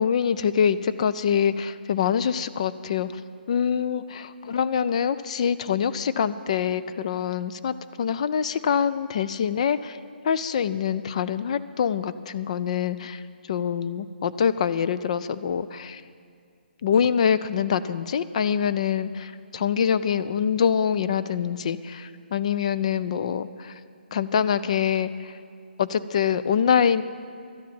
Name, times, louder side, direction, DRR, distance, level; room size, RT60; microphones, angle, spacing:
voice 1, 0.0-3.1 3.5-10.0 10.2-13.2 13.5-16.0 16.8-23.7 24.1-25.3 25.8-27.0, left 7 dB, 35° left, 13 dB, 0.4 m, -25 dB
12.5 x 7.5 x 8.9 m, 2.2 s
hypercardioid pair, 160°, 6 cm